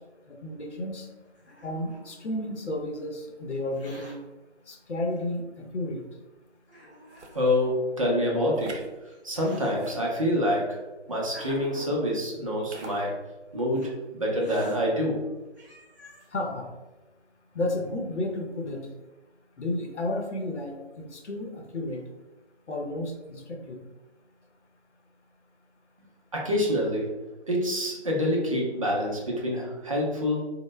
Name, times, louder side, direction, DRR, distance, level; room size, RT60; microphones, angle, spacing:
voice 1, 0.3-1.1 1.6-4.2 4.7-6.1 16.3-16.7 17.5-18.9 19.6-22.1 22.7-23.8, left 1 dB, 85° left, 2 dB, 0.7 m, -32 dB
Hiss, 1.0-2.6 3.6-4.2 5.1-5.2 6.0-6.1 6.7-7.7 8.5-9.7 10.6-12.1 12.7-13.1 13.7-13.9 14.4-14.8 15.3-15.4 15.5-16.3, equal, 15° left, 0.8 m, -48 dB
sound 1, 7.1-7.4 8.5-8.9 9.7-10.5 11.3-11.6 12.7-13.0, right 3 dB, 85° right, 0.6 m, -44 dB
voice 2, 7.3-8.8 9.2-10.8 11.1-13.2 13.5-15.3 26.3-27.1 27.5-30.4, left 1 dB, 30° right, -3 dB, 0.5 m, -26 dB
3.1 x 2.1 x 3.1 m, 1.1 s
figure-of-eight pair, 150°, 34 cm